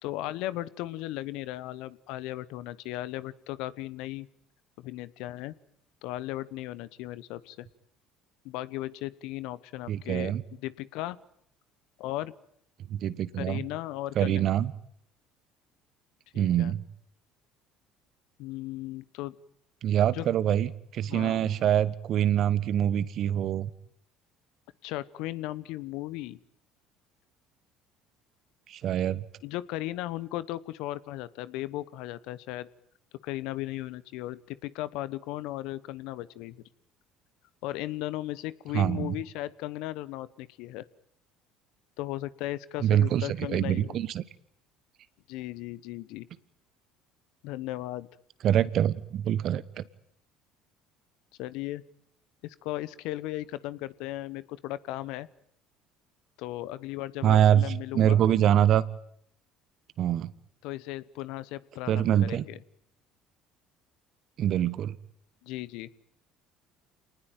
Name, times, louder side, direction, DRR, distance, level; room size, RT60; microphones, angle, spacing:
voice 1, 0.0-4.3 4.8-5.5 6.0-7.7 8.4-10.3 10.6-11.2 12.0-12.3 13.4-14.6 16.3-16.7 18.4-19.3 20.1-20.3 21.1-21.7 24.8-26.4 29.4-32.7 33.2-36.6 37.6-40.8 42.0-44.0 45.3-46.3 47.4-48.1 51.4-51.8 52.4-55.3 56.4-58.2 60.6-62.6 65.4-65.9, left 16 dB, 70° left, 18 dB, 1.0 m, -36 dB
voice 2, 9.9-10.4 12.9-13.6 14.2-14.7 16.3-16.8 19.8-23.7 28.7-29.2 38.7-39.1 42.8-44.2 48.4-49.8 57.2-57.7 57.9-58.8 60.0-60.3 61.9-62.4 64.4-65.0, right 10 dB, 55° right, 17 dB, 1.2 m, -25 dB
27.0 x 19.5 x 9.3 m, 0.69 s
hypercardioid pair, 65°, 0 cm